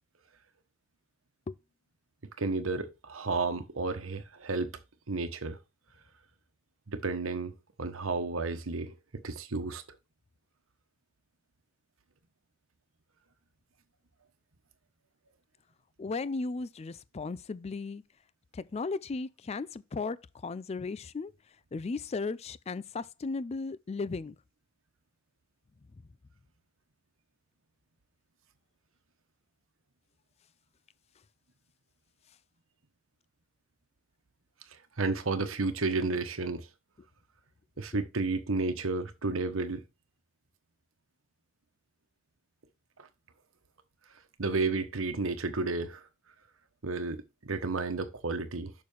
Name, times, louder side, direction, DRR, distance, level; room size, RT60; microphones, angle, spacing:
voice 1, 2.4-4.7 5.1-5.6 6.9-9.8 35.0-36.7 37.8-39.8 43.0-43.1 44.4-46.0 46.8-48.7, right 3 dB, 85° right, 1.2 m, -32 dB
voice 2, 16.0-18.0 18.5-20.2 20.4-21.3 21.7-24.4, left 4 dB, 30° left, 0.4 m, -35 dB
6.9 x 6.5 x 3.4 m
head